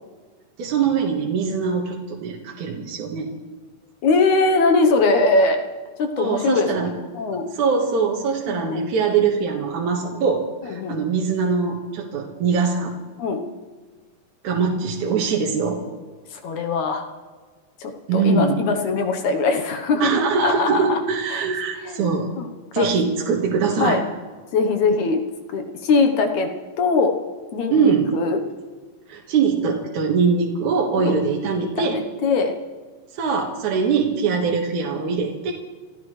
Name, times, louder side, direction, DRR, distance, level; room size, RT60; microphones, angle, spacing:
voice 1, 0.6-3.3 6.2-6.9 7.5-12.9 14.4-15.8 18.1-18.6 20.0-22.3 22.7-24.0 27.7-28.1 29.1-32.0 33.1-35.5, right 5 dB, 65° right, -1 dB, 2.8 m, -22 dB
voice 2, 4.0-5.6 6.0-7.5 8.5-8.9 10.1-10.2 10.8-11.0 13.2-13.4 16.3-17.1 17.8-20.1 20.4-21.0 21.3-21.5 21.9-22.5 22.8-22.9 23.8-24.0 24.5-25.2 25.5-26.5 26.8-27.1 27.5-28.4 31.0-31.1 31.8-32.5, left 3 dB, 65° left, 5 dB, 2.3 m, -21 dB
29.5 x 14.0 x 3.3 m, 1.4 s
omnidirectional pair, 4.0 m